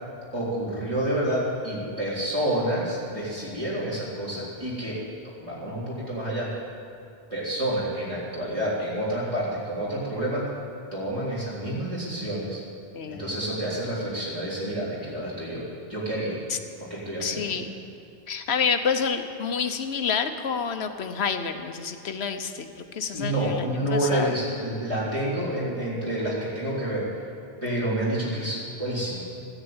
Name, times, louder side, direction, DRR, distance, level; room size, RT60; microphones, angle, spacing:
voice 1, 0.3-5.0 5.4-6.5 7.3-10.5 10.9-12.6 13.1-15.6 15.9-16.4 16.8-17.5 23.0-27.1 27.6-29.3, right 1 dB, 30° right, -9 dB, 3.9 m, -28 dB
voice 2, 12.9-13.3 16.5-16.6 17.2-17.8 18.3-24.3, left 6 dB, 85° left, 8 dB, 1.2 m, -28 dB
14.0 x 9.9 x 8.8 m, 2.5 s
omnidirectional pair, 1.1 m